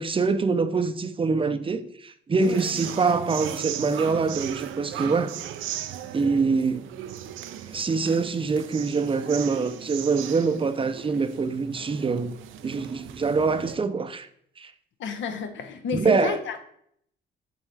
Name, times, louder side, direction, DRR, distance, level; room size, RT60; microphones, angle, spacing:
voice 1, 0.0-5.4 6.1-6.9 7.7-12.3 12.6-14.3 14.6-14.7 15.9-16.4, right 4 dB, 25° right, 0.5 m, -24 dB
sound 1, 2.4-13.8, right 11 dB, 85° right, 0.5 m, -37 dB
voice 2, 15.0-16.6, left 6 dB, 70° left, 0.9 m, -31 dB
7.2 x 4.2 x 3.3 m
cardioid pair, 90°, 20 cm